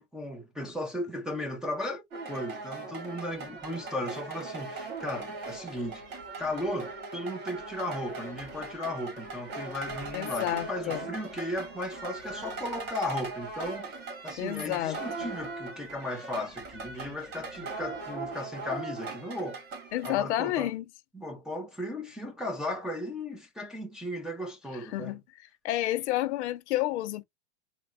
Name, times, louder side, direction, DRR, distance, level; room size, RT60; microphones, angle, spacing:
voice 1, 0.0-2.0 2.3-6.0 6.4-14.0 14.2-19.6 20.0-20.7 21.1-25.2, left 1 dB, ahead, 0.5 m, -36 dB
sound 1, 2.1-20.2, right 3 dB, 40° right, 2.3 m, -40 dB
voice 2, 10.1-11.1 14.4-15.0 19.9-20.8 24.9-25.2 25.6-27.2, left 15 dB, 80° left, 0.7 m, -30 dB
4.2 x 2.1 x 3.6 m
supercardioid pair, 150°, 34 cm